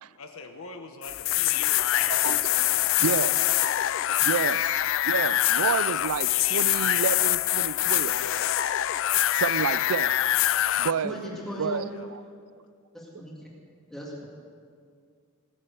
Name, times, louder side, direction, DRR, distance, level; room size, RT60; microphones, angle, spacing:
voice 1, 0.0-3.4 4.2-4.5 8.2-8.4 11.0-12.1, left 3 dB, 75° left, 5 dB, 1.1 m, -45 dB
sound 1, 1.0-10.9, left 14 dB, 60° left, 0.3 m, -24 dB
voice 2, 2.0-2.5 3.0-3.3 3.9-8.2 9.1-10.1 10.8-11.2 11.6-11.9, right 7 dB, 85° right, 17 dB, 0.4 m, -30 dB
voice 3, 11.0-11.9 12.9-13.5 13.9-14.3, left 1 dB, ahead, -4 dB, 2.2 m, -37 dB
20.0 x 7.5 x 8.3 m, 2.2 s
head